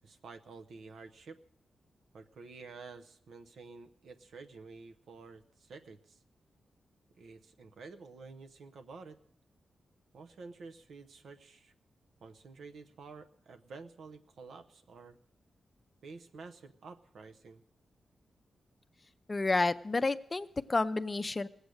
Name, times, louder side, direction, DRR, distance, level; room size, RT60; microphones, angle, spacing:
voice 1, 0.0-1.4 2.1-6.2 7.2-9.2 10.1-11.7 12.2-15.2 16.0-17.6, right 4 dB, 85° right, 7 dB, 0.8 m, -50 dB
voice 2, 19.3-21.5, left 3 dB, 30° left, 12 dB, 0.5 m, -30 dB
18.5 x 8.1 x 6.4 m, 0.72 s
cardioid pair, 80°, 0 cm